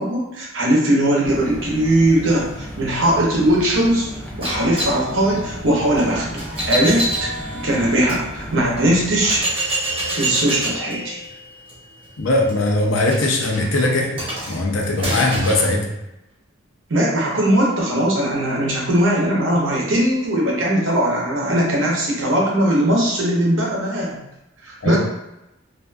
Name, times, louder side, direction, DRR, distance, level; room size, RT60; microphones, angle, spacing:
voice 1, 0.0-4.1 4.4-6.3 6.5-9.5 10.1-11.2 16.9-24.2 24.6-25.0, right 1 dB, 75° right, -3 dB, 0.8 m, -19 dB
sound 1, 1.2-9.4, equal, 5° left, 0.4 m, -34 dB
sound 2, 4.4-8.2 8.8-8.9 9.2-15.7, right 1 dB, 25° right, 0.8 m, -28 dB
voice 2, 12.2-15.9 24.8-25.0, left 2 dB, 75° left, 0 dB, 0.5 m, -20 dB
2.5 x 2.5 x 2.3 m, 0.91 s
head